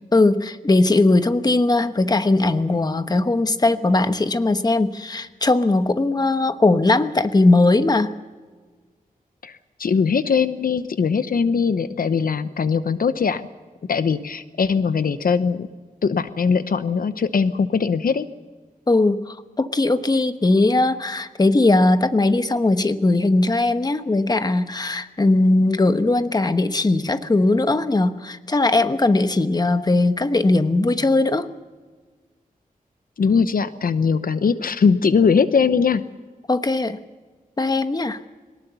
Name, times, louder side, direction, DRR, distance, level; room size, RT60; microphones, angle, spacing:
voice 1, 0.1-8.1 18.9-31.5 36.5-37.0 37.6-38.2, left 2 dB, 25° left, 10 dB, 1.0 m, -19 dB
voice 2, 9.4-13.4 13.9-15.7 16.0-18.3 33.2-36.0, left 5 dB, 75° left, 12 dB, 0.9 m, -20 dB
22.5 x 19.5 x 6.9 m, 1.4 s
wide cardioid pair, 115°, 15 cm